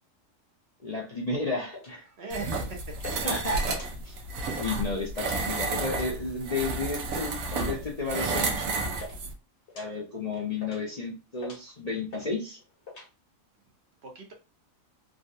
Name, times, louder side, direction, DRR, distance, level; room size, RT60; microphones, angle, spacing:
voice 1, 0.8-2.1 3.2-3.6 4.0-4.1 4.6-8.7 9.7-12.6, left 3 dB, 40° left, -3 dB, 0.6 m, -32 dB
sound 1, 1.7-1.9 2.4-2.7 3.0-3.2 3.6-4.2 4.5-4.7 5.2-5.5 5.8-6.1 6.6-6.9 7.5-7.7 8.3-8.5 8.7-9.2 9.7-9.9 10.3-10.9 11.4-11.7 12.1-12.3 12.6-13.1, left 3 dB, 55° left, 1.3 m, -42 dB
voice 2, 2.0-3.3 14.0-14.3, right 3 dB, 55° right, 1 dB, 0.9 m, -40 dB
sound 2, 2.3-9.3, right 3 dB, 85° right, 1.1 m, -31 dB
3.5 x 2.2 x 2.5 m, 0.29 s
omnidirectional pair, 1.4 m